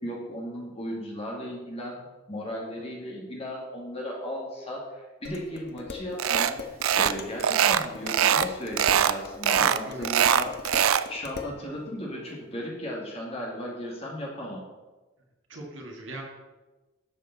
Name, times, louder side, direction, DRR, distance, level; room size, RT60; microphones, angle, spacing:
voice 1, 0.0-6.6 7.0-10.5 11.1-14.6, equal, 30° left, -2 dB, 2.3 m, -36 dB
Dishes pots and pans, 5.2-11.6, left 5 dB, 50° left, 0.9 m, -39 dB
sound 1, 6.2-6.5 6.8-7.2 7.4-8.5 8.8-9.1 9.4-11.1, right 9 dB, 80° right, 0.4 m, -22 dB
voice 2, 9.5-10.2 15.5-16.2, right 1 dB, 60° right, 0 dB, 1.9 m, -40 dB
11.5 x 7.4 x 4.1 m, 1.2 s
head